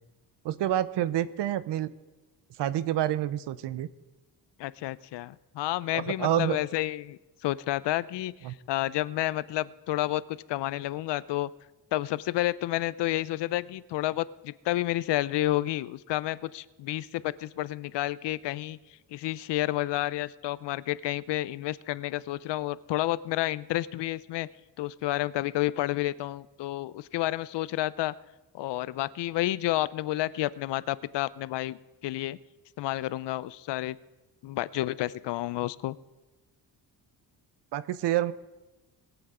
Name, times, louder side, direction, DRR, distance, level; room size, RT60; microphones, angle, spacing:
voice 1, 0.4-1.9 2.6-3.9 5.9-6.6 8.4-8.5 37.7-38.3, right 12 dB, 75° right, 16 dB, 0.7 m, -28 dB
voice 2, 4.6-8.3 8.7-11.5 11.9-18.8 19.1-24.5 24.8-28.1 28.5-32.4 32.8-34.0 34.4-36.0, left 15 dB, 80° left, 18 dB, 0.6 m, -30 dB
21.0 x 8.1 x 4.9 m, 1.1 s
wide cardioid pair, 170°, 42 cm